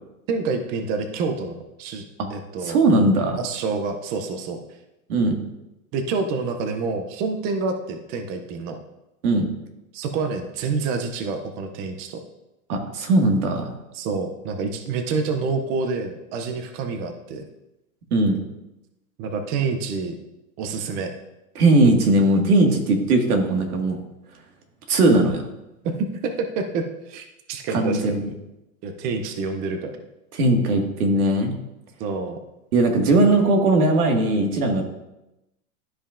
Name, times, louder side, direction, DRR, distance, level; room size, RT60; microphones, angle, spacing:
voice 1, 0.3-2.0 2.3-2.8 3.4-4.6 5.9-8.8 9.9-12.2 13.9-17.5 19.2-20.2 20.6-21.1 25.8-28.2 28.8-30.0 32.0-32.4, right 4 dB, 20° right, 6 dB, 0.4 m, -27 dB
voice 2, 2.6-3.4 5.1-5.4 9.2-9.5 12.7-13.7 18.1-18.4 21.5-24.0 24.9-25.4 27.7-28.2 30.3-31.5 32.7-34.8, right 2 dB, 80° right, 3 dB, 1.8 m, -19 dB
12.5 x 5.3 x 2.5 m, 0.94 s
hypercardioid pair, 135°, 44 cm